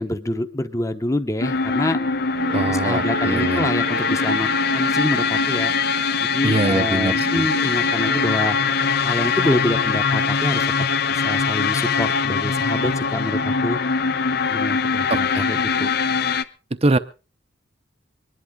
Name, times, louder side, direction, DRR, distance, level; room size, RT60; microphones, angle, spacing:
voice 1, 0.0-2.0 2.6-5.7 6.2-8.6 9.0-10.7 11.1-13.8 14.5-15.9, left 1 dB, 15° left, 8 dB, 0.9 m, -26 dB
sound 1, 1.4-16.4, left 5 dB, 55° left, 0.7 m, -22 dB
Guitar, 2.3-8.3, right 3 dB, 70° right, 1.3 m, -36 dB
voice 2, 2.5-3.7 6.4-7.5 15.1-15.5 16.7-17.0, right 2 dB, 30° right, 13 dB, 0.7 m, -23 dB
24.0 x 11.0 x 3.7 m, 0.32 s
head